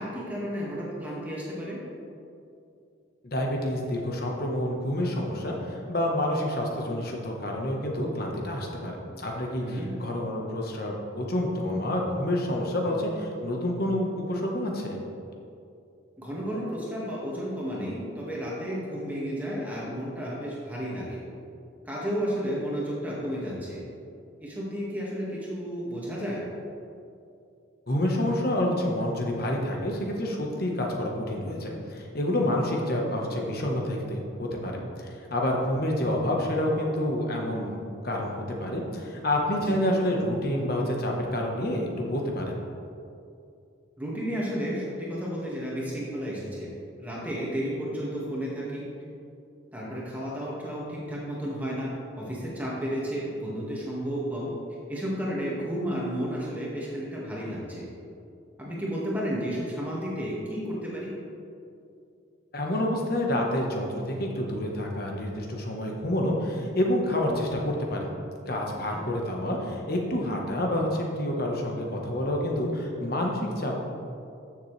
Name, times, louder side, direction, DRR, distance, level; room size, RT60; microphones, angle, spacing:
voice 1, 0.0-1.8 9.6-9.9 16.2-21.2 21.9-23.8 24.4-26.4 32.4-32.6 39.7-39.8 44.0-46.7 47.0-48.8 49.7-54.5 54.9-57.9 58.6-61.1, equal, 10° right, -6 dB, 1.9 m, -32 dB
voice 2, 3.2-15.0 27.9-37.8 38.0-42.5 62.5-68.1 68.5-73.8, left 1 dB, 50° left, 0 dB, 1.3 m, -28 dB
13.5 x 7.0 x 3.4 m, 2.6 s
head